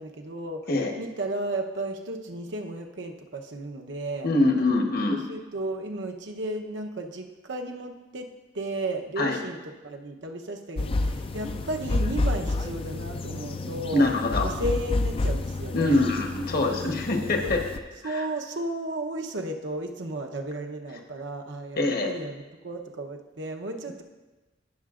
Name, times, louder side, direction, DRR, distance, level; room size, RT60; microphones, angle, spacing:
voice 1, 0.0-0.7 1.0-4.3 5.1-8.3 8.5-14.1 14.4-16.1 16.8-17.5 18.0-24.0, right 1 dB, 70° right, 3 dB, 0.9 m, -34 dB
voice 2, 4.2-5.2 9.2-9.4 13.9-14.5 15.7-17.6 18.0-18.2 21.8-22.1, left 2 dB, 55° left, 3 dB, 1.1 m, -24 dB
sound 1, 10.8-17.8, left 2 dB, 30° left, 0.4 m, -29 dB
17.0 x 6.7 x 2.5 m, 1.2 s
head